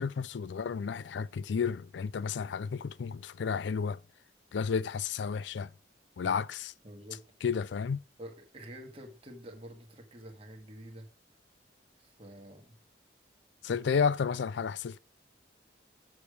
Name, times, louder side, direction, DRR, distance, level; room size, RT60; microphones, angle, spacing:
voice 1, 0.0-4.0 4.5-5.7 6.2-6.7 7.4-8.0 13.6-15.0, left 6 dB, 75° left, 0.4 m, -32 dB
voice 2, 6.8-7.2 8.2-11.1 12.0-12.8, right 1 dB, 30° right, 1.7 m, -48 dB
7.0 x 6.8 x 5.0 m
head